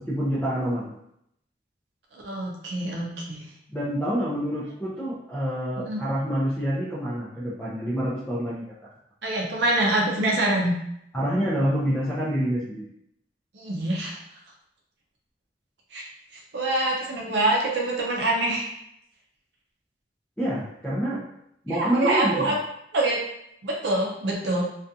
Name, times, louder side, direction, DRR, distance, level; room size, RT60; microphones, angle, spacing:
voice 1, 0.1-0.9 3.7-8.6 11.1-12.8 20.4-21.2 21.6-22.3, equal, 10° left, -9 dB, 0.5 m, -27 dB
voice 2, 2.1-3.5 5.9-6.0 9.2-10.7 13.5-14.2 15.9-16.0 16.5-18.7 21.7-22.6 22.9-23.2 23.6-24.6, right 1 dB, 75° right, -2 dB, 0.5 m, -25 dB
2.4 x 2.3 x 2.6 m, 0.75 s
head